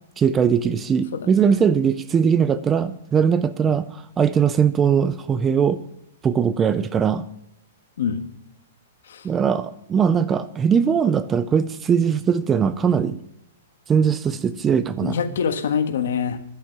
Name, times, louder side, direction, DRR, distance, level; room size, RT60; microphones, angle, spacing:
voice 1, 0.2-5.8 6.2-7.2 9.2-13.2 13.9-15.2, right 7 dB, 10° right, 0.4 m, -20 dB
voice 2, 15.0-16.4, left 7 dB, 70° left, 1.5 m, -24 dB
11.5 x 7.4 x 9.3 m
hypercardioid pair, 175°, 0 cm